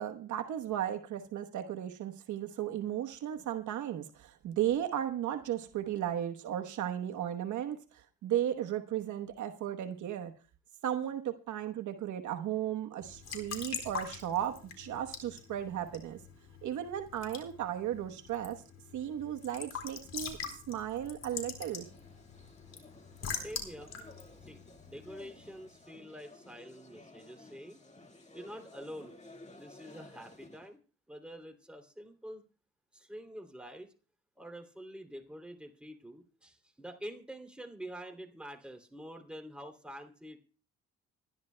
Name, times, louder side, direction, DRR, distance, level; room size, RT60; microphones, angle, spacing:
voice 1, 0.0-10.3 10.8-16.2 16.6-18.6 18.9-20.4 20.7-21.8, right 11 dB, 75° right, 1.1 m, -35 dB
Raindrop / Drip / Trickle dribble, 13.0-25.5, left 6 dB, 55° left, 4.0 m, -44 dB
sound 1, 21.6-30.7, left 2 dB, 25° left, 1.9 m, -55 dB
voice 2, 23.4-23.9 24.4-24.6 24.9-27.8 28.3-29.2 29.5-30.8 31.1-32.4 32.9-33.9 34.4-40.4, equal, 5° right, 2.8 m, -47 dB
27.5 x 11.0 x 2.2 m
cardioid pair, 90°, 30 cm